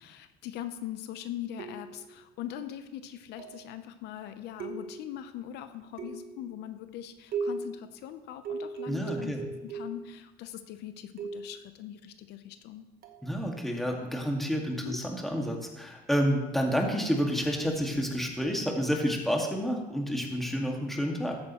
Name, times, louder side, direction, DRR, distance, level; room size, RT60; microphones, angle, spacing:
voice 1, 0.0-9.4 9.6-12.8 14.8-15.0, left 11 dB, 80° left, 10 dB, 0.7 m, -41 dB
sound 1, 1.6-2.1 3.4-3.7 4.6-5.2 6.0-6.5 7.3-7.8 8.4-10.1 11.2-11.6 13.0-13.3, right 4 dB, 60° right, 1.2 m, -37 dB
voice 2, 8.9-9.4 13.2-21.4, equal, ahead, 0 dB, 1.8 m, -29 dB
14.0 x 8.7 x 3.0 m, 1.0 s
cardioid pair, 110°, 17 cm